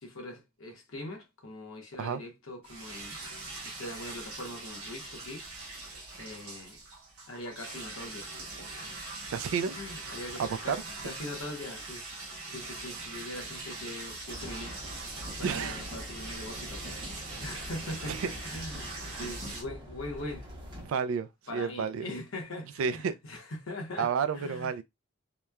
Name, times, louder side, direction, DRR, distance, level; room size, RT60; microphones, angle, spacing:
voice 1, 0.0-3.2 3.6-5.5 6.2-6.8 7.3-8.3 8.7-9.0 9.7-12.0 12.4-14.8 15.4-16.9 17.4-20.5 21.5-24.1 24.3-24.7, left 1 dB, 75° left, 0.9 m, -42 dB
sound 1, 2.6-19.6, right 3 dB, 90° right, 1.0 m, -42 dB
voice 2, 9.3-9.8 10.4-10.8 15.4-15.9 17.3-17.5 18.1-18.3 19.0-19.3 20.8-22.1 22.8-23.1 24.0-24.8, right 6 dB, 70° right, 0.3 m, -31 dB
sound 2, 14.3-20.9, equal, 20° right, 0.7 m, -44 dB
2.9 x 2.1 x 2.3 m
head